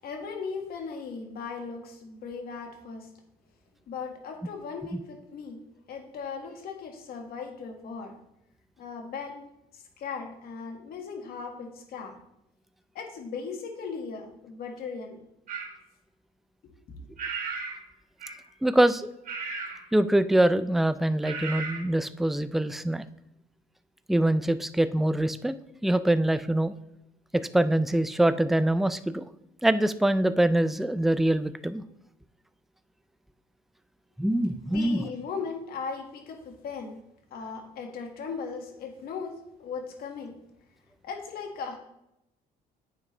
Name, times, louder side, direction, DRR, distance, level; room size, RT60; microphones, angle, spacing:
voice 1, 0.0-3.1 3.9-5.6 5.9-8.2 8.8-9.4 9.7-12.1 13.0-15.2 16.6-16.7 34.7-37.0 37.3-40.4 41.0-41.8, left 5 dB, 65° left, 3 dB, 1.9 m, -38 dB
sound 1, 15.5-15.7 17.2-17.8 18.2-18.5 19.3-19.8 21.2-21.8, right 5 dB, 55° right, 2.2 m, -35 dB
voice 2, 18.6-19.1 19.9-23.1 24.1-25.5 25.8-26.7 27.3-29.3 29.6-31.8 34.2-35.1, right 1 dB, ahead, 12 dB, 0.4 m, -24 dB
9.4 x 7.3 x 3.3 m, 0.84 s
cardioid pair, 110°, 17 cm